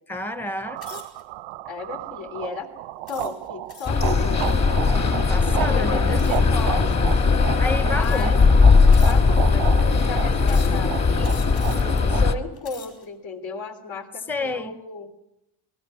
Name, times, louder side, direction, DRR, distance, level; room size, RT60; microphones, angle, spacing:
voice 1, 0.1-1.0 5.3-6.4 7.6-8.4 14.3-14.8, left 2 dB, 5° left, 0.7 m, -30 dB
sound 1, 0.6-12.2, right 16 dB, 85° right, 0.8 m, -34 dB
sound 2, 0.8-1.2 1.9-2.1 3.1-4.1 6.2-6.6 7.4-7.5 8.0-8.5 8.9-9.5 10.4-10.9 11.2-12.0 12.5-13.1, left 7 dB, 55° left, 6.4 m, -44 dB
voice 2, 1.6-2.7 3.1-4.7 5.5-7.2 7.9-8.5 8.9-11.4 12.1-15.1, left 4 dB, 75° left, 3.4 m, -34 dB
sound 3, 3.9-12.3, left 4 dB, 35° left, 1.7 m, -19 dB
28.0 x 19.5 x 6.3 m
cardioid pair, 125°, 45 cm